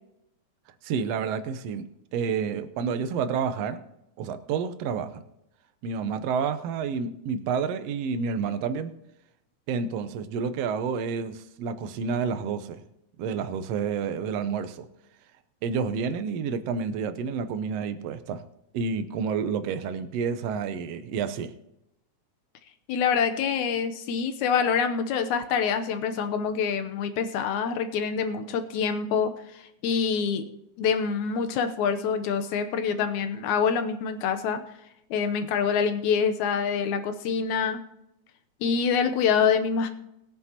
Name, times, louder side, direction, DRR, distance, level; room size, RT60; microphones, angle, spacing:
voice 1, 0.8-3.8 4.2-5.2 5.8-8.9 9.7-12.8 13.2-14.9 15.6-18.4 18.7-21.5, right 6 dB, 70° right, 11 dB, 1.7 m, -29 dB
voice 2, 22.9-30.5 30.8-34.6 35.1-37.8 38.6-39.9, left 6 dB, 80° left, 7 dB, 2.2 m, -26 dB
20.5 x 9.6 x 2.9 m, 0.84 s
omnidirectional pair, 3.4 m